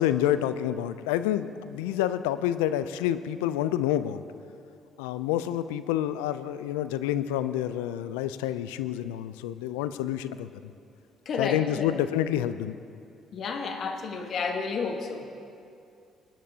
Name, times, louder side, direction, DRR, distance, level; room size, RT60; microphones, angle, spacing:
voice 1, 0.0-4.2 5.0-10.7 11.4-12.8, left 11 dB, 85° left, 13 dB, 0.3 m, -28 dB
voice 2, 11.2-11.9 13.3-15.3, left 4 dB, 60° left, 4 dB, 1.3 m, -31 dB
20.5 x 10.0 x 2.8 m, 2.5 s
hypercardioid pair, 55°, 0 cm